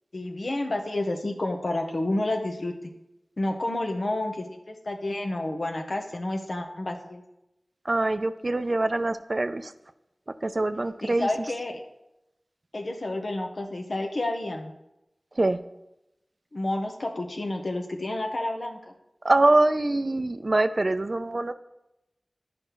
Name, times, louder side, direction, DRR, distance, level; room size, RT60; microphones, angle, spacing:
voice 1, 0.1-2.7 3.4-7.2 11.0-11.8 12.7-14.7 16.5-18.8, left 1 dB, 70° left, 2 dB, 0.9 m, -30 dB
voice 2, 7.9-9.7 10.4-11.3 15.4-15.6 19.2-21.5, right 2 dB, 55° right, 11 dB, 0.4 m, -24 dB
11.0 x 5.1 x 3.1 m, 0.89 s
wide cardioid pair, 40°, 0 cm